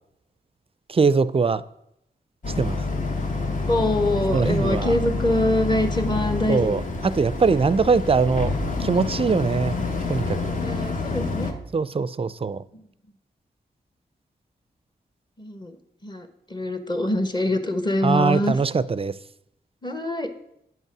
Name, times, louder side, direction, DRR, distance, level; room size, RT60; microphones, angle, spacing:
voice 1, 0.9-1.6 2.6-2.8 4.3-4.9 6.5-8.5 8.8-9.7 10.1-10.5 11.7-12.6 18.0-19.1, right 4 dB, 35° right, 0.4 m, -22 dB
Boat Water vehicle, 2.4-11.5, left 3 dB, 45° left, 1.2 m, -27 dB
voice 2, 3.7-7.2 10.6-11.6 12.7-12.8 15.4-15.8 16.0-18.6 19.8-20.3, left 1 dB, 25° left, 1.2 m, -25 dB
9.2 x 5.5 x 6.0 m
cardioid pair, 60°, 18 cm